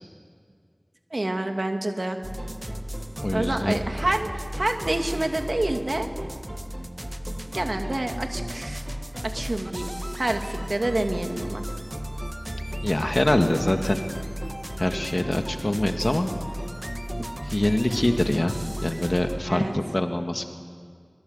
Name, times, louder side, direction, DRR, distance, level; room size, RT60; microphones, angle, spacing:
voice 1, 1.1-2.2 3.3-6.1 7.5-8.8 9.2-9.9 10.2-11.6 19.5-19.7, right 1 dB, 65° right, 4 dB, 2.3 m, -27 dB
sound 1, 2.2-19.4, equal, 25° right, 1.5 m, -34 dB
voice 2, 3.2-3.8 12.8-14.0 14.8-16.3 17.5-18.5 18.8-20.4, left 1 dB, 45° left, 5 dB, 1.9 m, -24 dB
25.5 x 21.5 x 8.1 m, 2.1 s
wide cardioid pair, 40°, 0 cm